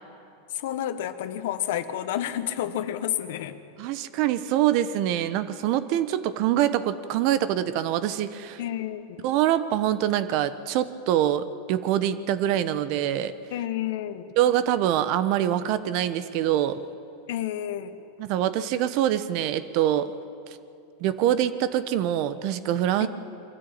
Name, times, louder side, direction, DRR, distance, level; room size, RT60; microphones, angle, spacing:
voice 1, 0.5-3.6 8.6-9.3 13.5-14.3 17.3-18.0 23.0-23.1, left 11 dB, 70° left, 11 dB, 1.2 m, -30 dB
voice 2, 3.8-8.6 9.2-13.3 14.4-16.8 18.2-20.1 21.0-23.1, right 11 dB, 55° right, 13 dB, 1.0 m, -24 dB
23.0 x 13.5 x 8.7 m, 2.7 s
supercardioid pair, 120°, 0 cm